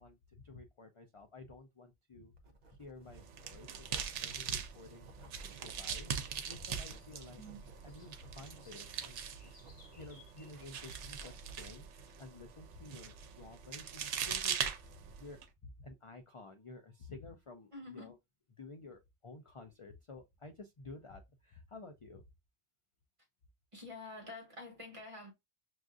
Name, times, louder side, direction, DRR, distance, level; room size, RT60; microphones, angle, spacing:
voice 1, 0.0-2.3 2.7-5.1 5.6-7.4 7.8-9.2 9.9-18.2 18.6-22.2, left 3 dB, 50° left, 0.4 m, -52 dB
Writing, 2.4-11.7, right 2 dB, 45° right, 0.7 m, -60 dB
sound 1, 3.0-11.0, left 1 dB, 30° left, 1.0 m, -64 dB
sound 2, 3.1-15.4, right 7 dB, 75° right, 0.9 m, -42 dB
voice 2, 17.7-18.1 23.7-25.3, left 2 dB, 30° right, 1.1 m, -48 dB
6.2 x 2.5 x 2.4 m
omnidirectional pair, 1.2 m